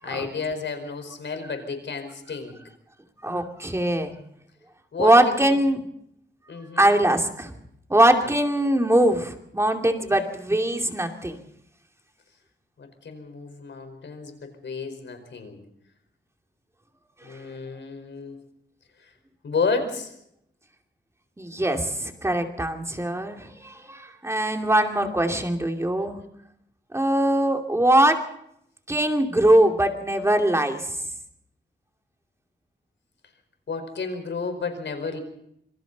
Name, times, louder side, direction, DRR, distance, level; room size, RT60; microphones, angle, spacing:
voice 1, 0.0-2.6 4.9-5.5 6.5-6.9 12.8-15.6 17.2-18.4 19.0-19.1 19.4-20.1 33.7-35.2, left 4 dB, 75° left, 7 dB, 4.8 m, -31 dB
voice 2, 3.2-4.1 5.0-5.8 6.8-7.5 7.9-11.4 17.3-17.5 21.4-26.2 26.9-28.2 28.9-31.0, right 1 dB, 15° right, 3 dB, 2.6 m, -22 dB
26.5 x 24.5 x 4.1 m, 0.75 s
wide cardioid pair, 135°, 19 cm